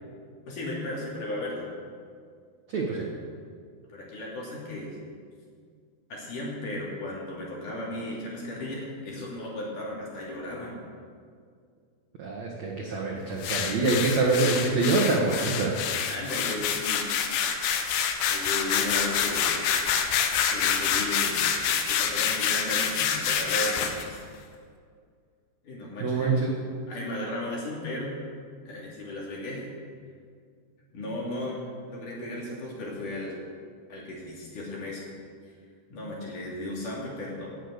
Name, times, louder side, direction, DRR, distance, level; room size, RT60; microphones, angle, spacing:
voice 1, 0.5-1.7 2.9-3.1 3.9-5.0 6.1-10.8 16.1-17.4 18.3-19.5 20.5-21.4 21.9-24.2 25.6-26.4 26.9-28.1 28.7-29.6 30.9-33.3 33.9-35.1 35.9-37.5, left 1 dB, 45° left, -4 dB, 4.1 m, -35 dB
voice 2, 2.7-3.0 12.2-15.7 26.0-26.5, right 3 dB, 60° right, -2 dB, 1.9 m, -25 dB
sound 1, 13.4-24.1, left 7 dB, 90° left, 3.4 m, -27 dB
18.5 x 8.8 x 6.7 m, 2.1 s
omnidirectional pair, 5.3 m